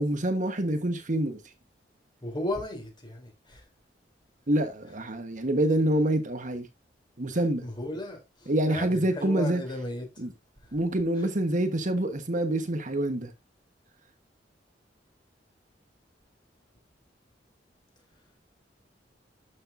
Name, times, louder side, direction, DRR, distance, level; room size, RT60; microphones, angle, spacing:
voice 1, 0.0-1.4 4.5-6.7 7.2-7.6 8.5-9.6 10.2-10.3 10.7-13.3, right 1 dB, 45° right, 1.2 m, -26 dB
voice 2, 2.2-3.6 7.6-10.1 11.2-11.3, left 1 dB, 25° left, 3.4 m, -35 dB
12.0 x 6.4 x 2.6 m
head